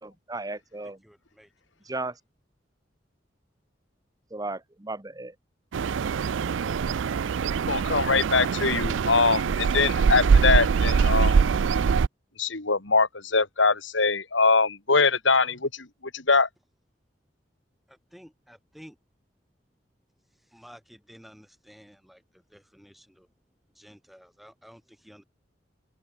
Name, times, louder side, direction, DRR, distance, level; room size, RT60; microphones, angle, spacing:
voice 1, 0.0-1.0 1.9-2.1 4.3-5.3, right 2 dB, 20° right, 1.4 m, -35 dB
voice 2, 1.0-1.5 1.9-2.0 17.9-19.0 20.4-23.3 23.7-25.2, equal, ahead, 7.6 m, -52 dB
sound 1, 5.7-12.1, right 5 dB, 90° right, 0.4 m, -23 dB
voice 3, 7.7-11.3 12.4-15.9 16.1-16.5, left 4 dB, 90° left, 2.9 m, -23 dB
head